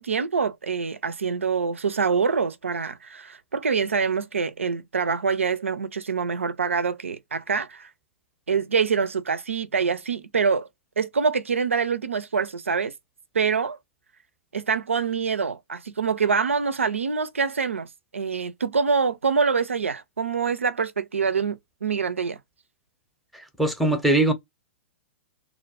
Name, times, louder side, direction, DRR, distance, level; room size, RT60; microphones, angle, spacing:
voice 1, 0.0-7.9 8.5-10.7 11.0-12.9 13.3-13.8 14.5-17.9 18.1-22.4, right 5 dB, 85° right, 0.4 m, -25 dB
voice 2, 23.3-24.3, right 2 dB, ahead, 0.6 m, -21 dB
2.3 x 2.1 x 2.7 m
figure-of-eight pair, 110°, 7 cm